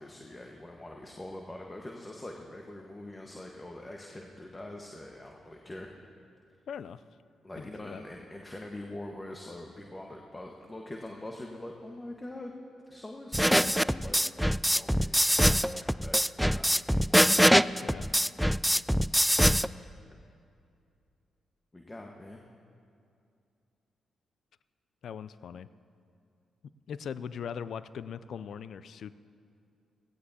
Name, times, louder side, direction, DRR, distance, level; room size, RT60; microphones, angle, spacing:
voice 1, 0.0-5.9 7.4-12.5 12.9-14.2 14.7-17.5 20.0-20.1 21.7-22.4, left 1 dB, 25° left, 1 dB, 1.4 m, -44 dB
voice 2, 6.7-7.0 7.6-8.0 17.8-18.1 25.0-25.7 26.9-29.1, left 7 dB, 65° left, 15 dB, 0.4 m, -40 dB
sound 1, 13.3-19.7, equal, ahead, 0.3 m, -23 dB
17.0 x 16.5 x 2.8 m, 2.5 s
hypercardioid pair, 40°, 0 cm